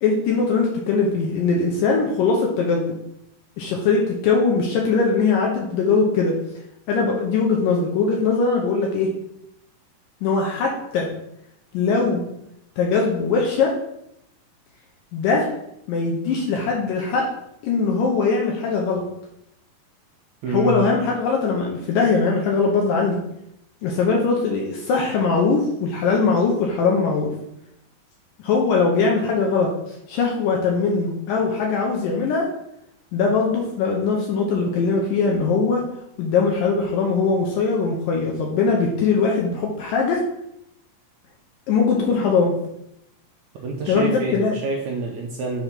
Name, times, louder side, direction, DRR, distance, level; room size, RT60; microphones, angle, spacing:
voice 1, 0.0-3.0 3.6-6.4 6.9-9.1 10.2-11.1 11.7-12.2 12.8-13.8 15.1-15.5 15.9-17.3 17.6-19.0 20.5-23.2 23.8-27.3 28.4-29.7 30.1-32.5 33.1-35.9 36.2-40.3 41.7-42.5 43.9-44.5, left 4 dB, 75° left, -1 dB, 2.4 m, -21 dB
voice 2, 20.4-20.9 43.6-45.6, right 3 dB, 75° right, 0 dB, 1.7 m, -27 dB
6.0 x 3.5 x 5.8 m, 0.79 s
omnidirectional pair, 4.1 m